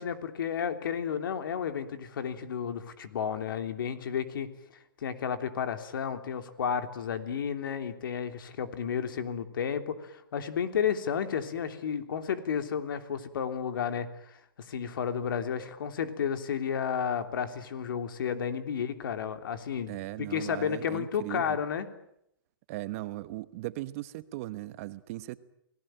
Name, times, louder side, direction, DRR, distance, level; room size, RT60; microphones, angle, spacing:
voice 1, 0.0-4.5 5.0-14.4 14.7-19.9 20.3-21.9, left 7 dB, 65° left, 3.2 m, -32 dB
voice 2, 19.9-21.6 22.7-25.4, right 17 dB, 35° right, 1.2 m, -38 dB
29.0 x 19.0 x 9.0 m
hypercardioid pair, 150°, 12 cm